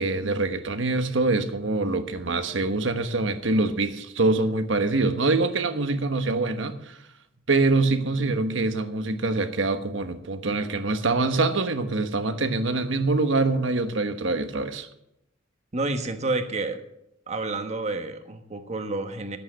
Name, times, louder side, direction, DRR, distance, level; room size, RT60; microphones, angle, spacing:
voice 1, 0.0-7.0 7.5-14.9, right 3 dB, 70° right, 8 dB, 1.2 m, -24 dB
voice 2, 15.7-16.8 17.3-19.4, right 2 dB, 35° right, 7 dB, 1.3 m, -29 dB
13.0 x 8.5 x 6.4 m, 0.81 s
head